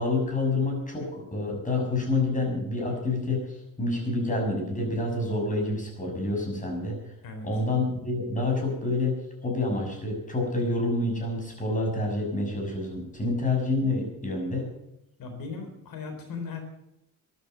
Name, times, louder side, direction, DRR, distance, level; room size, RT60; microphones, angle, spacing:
voice 1, 0.0-7.1 7.4-14.7, left 2 dB, 20° left, 1 dB, 6.6 m, -28 dB
voice 2, 15.2-16.6, left 4 dB, 65° left, 5 dB, 4.0 m, -37 dB
14.0 x 11.0 x 7.9 m, 0.83 s
cardioid pair, 130°, 37 cm